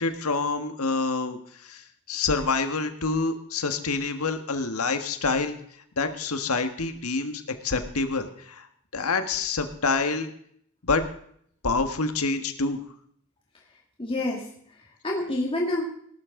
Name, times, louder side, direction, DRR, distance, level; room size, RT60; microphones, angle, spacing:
voice 1, 0.0-1.8 2.1-5.6 6.0-8.7 8.9-10.3 10.8-11.0 11.6-12.8, left 4 dB, 85° left, 7 dB, 1.6 m, -27 dB
voice 2, 14.0-14.5 14.7-15.8, left 1 dB, 25° left, -2 dB, 2.1 m, -28 dB
18.0 x 12.5 x 3.8 m, 0.64 s
head